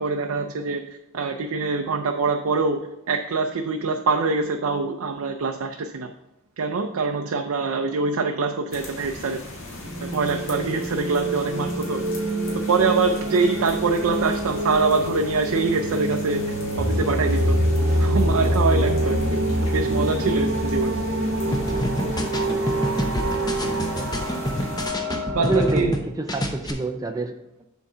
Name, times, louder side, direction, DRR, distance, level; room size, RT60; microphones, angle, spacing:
voice 1, 0.0-2.8 3.1-6.1 6.6-9.4 10.0-12.0 12.7-16.4 16.8-17.5 18.0-19.4 19.7-21.0 25.3-25.9, right 4 dB, 75° right, 4 dB, 0.5 m, -24 dB
sound 1, 8.7-24.9, left 2 dB, 65° left, 1.5 m, -37 dB
sound 2, 9.7-25.8, right 1 dB, 60° right, 0.9 m, -25 dB
sound 3, 21.5-26.0 26.3-26.7, equal, 20° left, 0.6 m, -27 dB
voice 2, 25.4-27.7, right 3 dB, 15° right, 4 dB, 0.3 m, -27 dB
7.0 x 3.8 x 5.4 m, 0.91 s
head